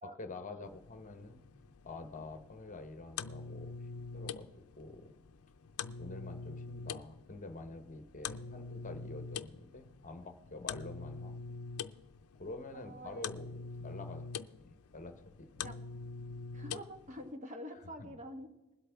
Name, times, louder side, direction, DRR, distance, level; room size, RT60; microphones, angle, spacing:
voice 1, 0.0-1.4 1.8-5.1 6.0-11.4 12.4-15.7 18.0-18.1, left 2 dB, 35° left, 8 dB, 1.0 m, -47 dB
sound 1, 0.6-17.3, left 5 dB, 80° left, 0.5 m, -45 dB
voice 2, 12.7-13.3 15.6-15.8 16.5-18.7, equal, 35° right, 5 dB, 1.4 m, -47 dB
21.0 x 8.3 x 3.5 m, 1.1 s
head